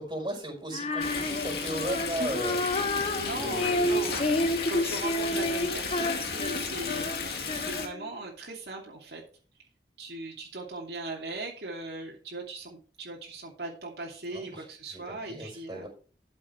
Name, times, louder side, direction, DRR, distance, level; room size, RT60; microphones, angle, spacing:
voice 1, 0.0-2.6 3.4-4.1 14.3-15.9, right 1 dB, 25° right, 2 dB, 4.9 m, -36 dB
Female singing, 0.7-8.1, left 2 dB, 35° left, 1.0 m, -30 dB
Stream, 1.0-7.9, left 4 dB, 60° left, 2.3 m, -34 dB
voice 2, 3.1-4.2 4.7-7.2 7.5-9.2 10.0-15.9, right 2 dB, 65° right, -2 dB, 2.7 m, -39 dB
12.5 x 7.4 x 3.4 m, 0.38 s
head